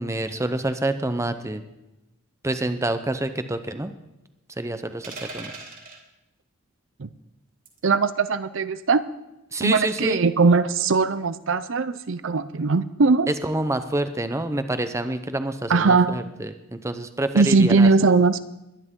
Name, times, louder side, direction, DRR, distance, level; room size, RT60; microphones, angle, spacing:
voice 1, 0.0-1.6 2.4-3.9 4.6-5.5 9.5-10.2 13.3-17.9, right 1 dB, 15° right, 10 dB, 0.7 m, -27 dB
sound 1, 5.0-6.0 7.6-7.9 9.6-10.0, right 3 dB, 40° right, 2.7 m, -39 dB
voice 2, 7.8-9.0 9.6-13.3 15.7-16.2 17.3-18.4, right 4 dB, 60° right, 13 dB, 0.6 m, -20 dB
22.0 x 10.5 x 3.8 m, 0.95 s
head